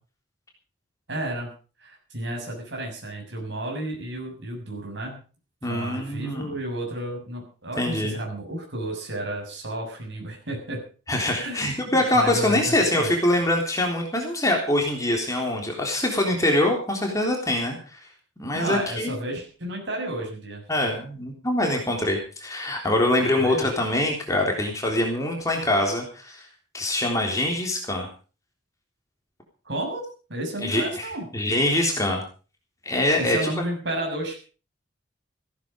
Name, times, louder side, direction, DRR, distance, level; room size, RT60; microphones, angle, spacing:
voice 1, 1.1-1.5 1.8-5.2 5.6-10.8 11.4-13.1 18.5-20.6 23.4-23.7 29.7-31.3 33.2-34.4, right 1 dB, 65° right, 1 dB, 6.8 m, -32 dB
voice 2, 5.6-6.5 7.8-8.1 11.1-18.0 18.4-19.2 20.7-26.5 26.7-28.1 30.6-31.0 31.3-32.2 32.9-33.5, left 1 dB, 15° left, 1 dB, 3.6 m, -24 dB
16.0 x 13.5 x 5.2 m, 0.38 s
head